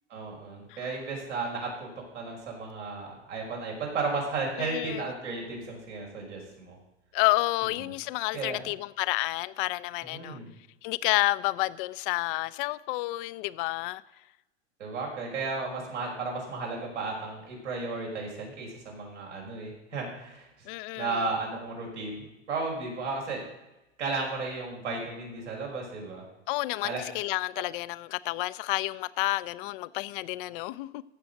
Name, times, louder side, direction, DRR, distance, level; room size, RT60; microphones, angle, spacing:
voice 1, 0.1-6.8 8.3-8.6 10.0-10.5 14.8-20.7 21.0-23.4 24.0-26.2 26.8-27.0, right 3 dB, 80° right, 5.3 m, -34 dB
voice 2, 4.6-5.1 7.1-10.4 10.8-14.0 20.7-21.3 26.5-31.0, left 20 dB, 50° left, 0.6 m, -30 dB
14.5 x 6.2 x 7.7 m
hypercardioid pair, 100°, 35 cm